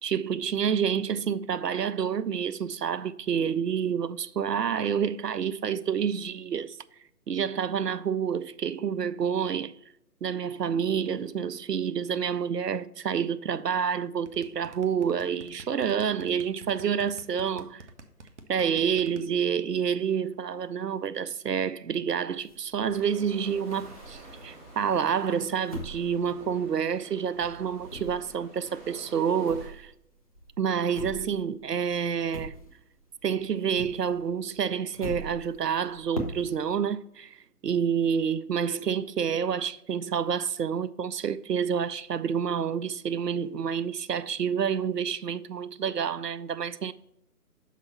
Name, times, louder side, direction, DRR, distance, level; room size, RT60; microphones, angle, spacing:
voice 1, 0.0-6.8 7.3-9.8 10.2-17.8 18.5-29.9 30.6-32.6 33.2-37.4 37.6-46.9, right 7 dB, 90° right, 0.6 m, -28 dB
sound 1, 14.3-19.2, right 3 dB, 50° right, 0.9 m, -46 dB
sound 2, 22.4-24.6 25.0-27.1 27.4-33.1 33.4-36.7, equal, 25° left, 0.5 m, -42 dB
sound 3, 22.9-29.7, right 1 dB, 30° right, 2.7 m, -49 dB
6.0 x 5.5 x 4.1 m
figure-of-eight pair, 145°, 47 cm